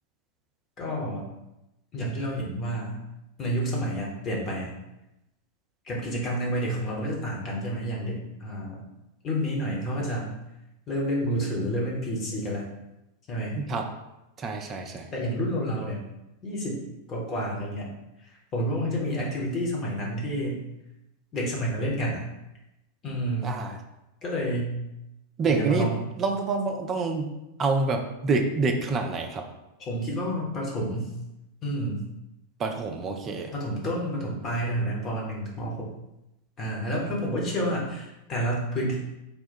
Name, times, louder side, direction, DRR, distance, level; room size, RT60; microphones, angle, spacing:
voice 1, 0.8-1.2 1.9-3.0 3.4-4.7 5.9-8.8 9.2-10.3 10.9-12.7 13.3-13.6 15.1-16.0 16.4-16.8 17.1-17.9 18.5-20.6 21.3-22.2 23.0-23.5 24.2-24.7 25.4-26.1 29.8-31.1 31.6-32.0 33.5-35.9 36.6-39.0, equal, 30° left, -3 dB, 1.1 m, -29 dB
voice 2, 13.6-13.9 14.4-15.1 23.4-23.7 25.4-25.9 26.2-27.3 27.6-29.5 32.6-33.5, right 3 dB, 25° right, 4 dB, 0.5 m, -27 dB
3.6 x 2.3 x 4.3 m, 0.92 s
figure-of-eight pair, 90°, 0 cm